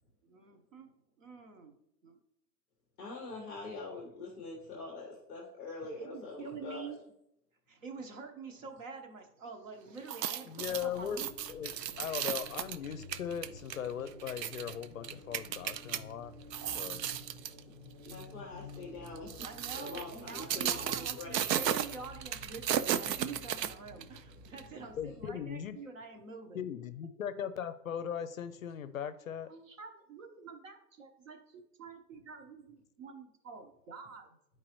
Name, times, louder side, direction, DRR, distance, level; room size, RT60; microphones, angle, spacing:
voice 1, 0.2-0.9 1.2-1.7 2.0-2.2 6.0-7.0 7.7-11.3 11.9-12.1 19.4-26.7 29.5-34.3, right 4 dB, 50° right, 5 dB, 1.1 m, -47 dB
voice 2, 3.0-6.9 18.1-19.3 19.7-21.4, left 3 dB, 5° left, -3 dB, 0.6 m, -44 dB
sound 1, 10.0-16.0 16.4-17.6 18.0-18.2 19.1-24.2 24.6-24.7, right 10 dB, 80° right, 0.6 m, -35 dB
voice 3, 10.5-11.2 11.5-11.7 12.0-16.3 16.7-17.1 25.0-25.8 26.5-29.5, left 8 dB, 55° left, 13 dB, 0.5 m, -39 dB
sound 2, 10.6-25.7, left 2 dB, 25° right, 0.8 m, -52 dB
9.9 x 4.7 x 3.0 m, 0.79 s
hypercardioid pair, 170°, 49 cm